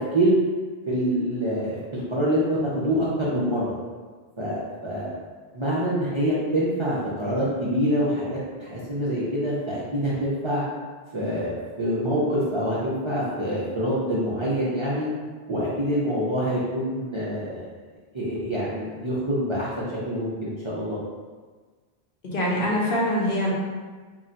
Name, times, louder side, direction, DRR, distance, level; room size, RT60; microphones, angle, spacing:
voice 1, 0.9-3.7 4.4-5.1 5.5-10.6 11.1-15.1 15.5-17.7 18.1-21.0, equal, 40° right, -9 dB, 0.4 m, -26 dB
voice 2, 22.2-23.5, left 1 dB, 65° left, -4 dB, 0.8 m, -24 dB
2.2 x 2.2 x 3.8 m, 1.4 s
omnidirectional pair, 1.0 m